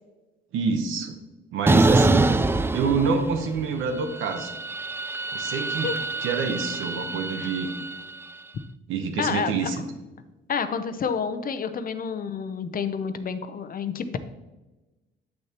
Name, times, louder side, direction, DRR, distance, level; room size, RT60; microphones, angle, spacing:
voice 1, 0.5-1.2 1.5-2.3 2.7-4.5 5.3-5.9 6.2-7.7 8.9-9.8, right 5 dB, 85° right, 7 dB, 1.0 m, -27 dB
sound 1, 1.7-3.6 3.9-8.3, right 2 dB, 10° right, 0.3 m, -25 dB
voice 2, 5.5-5.9 7.4-7.5 9.2-9.5 10.5-14.2, left 6 dB, 45° left, 10 dB, 0.6 m, -29 dB
8.0 x 6.5 x 2.9 m, 1.1 s
cardioid pair, 90°, 20 cm